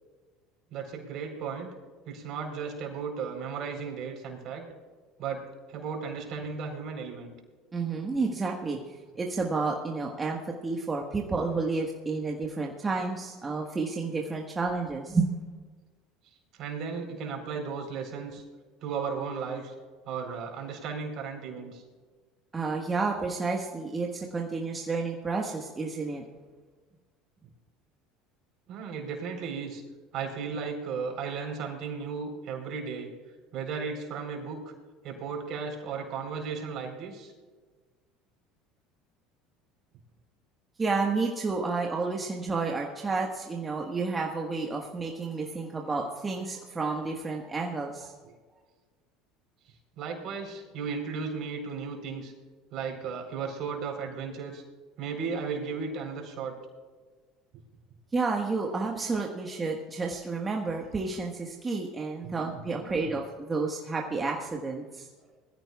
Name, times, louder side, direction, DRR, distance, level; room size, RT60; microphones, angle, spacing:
voice 1, 0.7-1.7 2.1-4.6 5.2-5.4 5.7-7.3 16.5-18.4 18.8-19.7 20.0-21.8 28.7-29.8 30.1-33.1 33.5-34.7 35.0-37.3 50.0-52.3 52.7-54.6 55.0-56.5 62.2-63.1, right 5 dB, 60° right, 3 dB, 4.0 m, -35 dB
voice 2, 7.7-8.8 9.2-15.3 22.5-26.2 40.8-48.1 58.1-65.1, right 4 dB, 25° right, 0 dB, 1.5 m, -30 dB
21.5 x 15.0 x 2.4 m, 1.4 s
hypercardioid pair, 85°, 0 cm